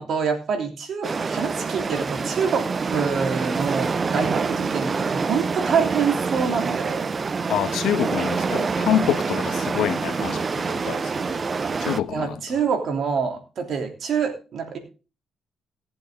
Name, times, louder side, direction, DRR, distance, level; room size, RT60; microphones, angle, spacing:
voice 1, 0.0-7.1 12.1-14.8, right 6 dB, 60° right, 3.2 m, -26 dB
sound 1, 1.0-12.0, right 4 dB, 35° right, 0.6 m, -26 dB
voice 2, 7.5-11.1 11.4-11.5 11.8-12.3, left 10 dB, 80° left, 1.1 m, -26 dB
18.0 x 7.8 x 3.8 m
cardioid pair, 90°, 0 cm